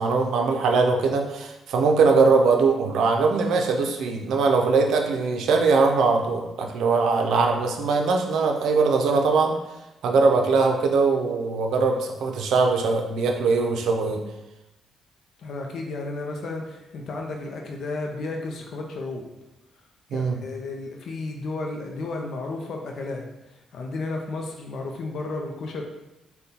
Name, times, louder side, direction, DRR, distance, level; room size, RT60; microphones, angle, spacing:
voice 1, 0.0-9.6 10.0-14.2 20.1-20.4, right 4 dB, 75° right, 3 dB, 0.5 m, -21 dB
voice 2, 15.4-19.2 20.1-25.8, left 2 dB, 65° left, 2 dB, 0.5 m, -33 dB
5.1 x 2.2 x 2.8 m, 0.95 s
cardioid pair, 90°, 0 cm